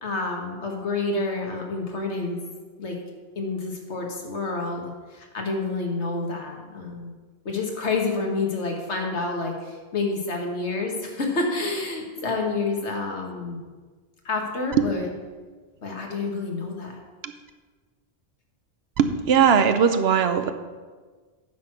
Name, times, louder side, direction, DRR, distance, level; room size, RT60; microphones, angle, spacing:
voice 1, 0.0-2.4 2.8-3.0 3.4-7.1 7.5-13.6 14.3-15.1 15.8-17.0, left 3 dB, 75° left, 1 dB, 1.8 m, -28 dB
voice 2, 19.0-20.5, right 7 dB, 65° right, 9 dB, 0.9 m, -19 dB
9.4 x 6.3 x 5.9 m, 1.4 s
omnidirectional pair, 1.2 m